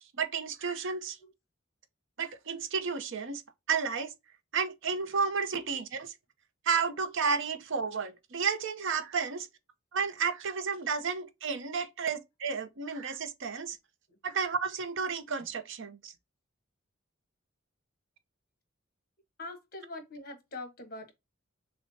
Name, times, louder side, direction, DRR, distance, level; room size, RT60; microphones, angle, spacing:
voice 1, 0.2-1.2 2.2-3.4 3.7-4.1 4.5-6.1 6.6-9.5 9.9-13.8 14.2-16.1, right 5 dB, 65° right, 0.7 m, -32 dB
voice 2, 19.4-21.1, left 2 dB, 50° left, 1.2 m, -43 dB
6.3 x 2.1 x 2.6 m
head